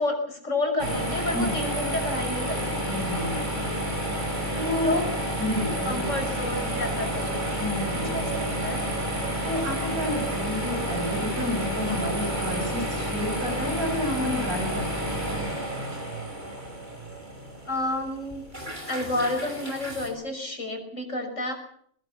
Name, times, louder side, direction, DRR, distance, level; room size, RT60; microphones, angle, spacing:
voice 1, 0.0-2.9 4.3-4.4 4.8-5.0 5.8-7.6 7.9-8.8 17.6-18.4 18.9-21.5, left 2 dB, 55° left, 5 dB, 6.5 m, -30 dB
sound 1, 0.8-20.1, equal, 30° right, 6.4 m, -30 dB
voice 2, 2.9-3.7 4.6-5.0 5.4-6.1 7.6-8.5 9.4-15.1, left 1 dB, 75° right, 4 dB, 7.7 m, -30 dB
23.5 x 20.0 x 7.2 m, 0.66 s
omnidirectional pair, 1.5 m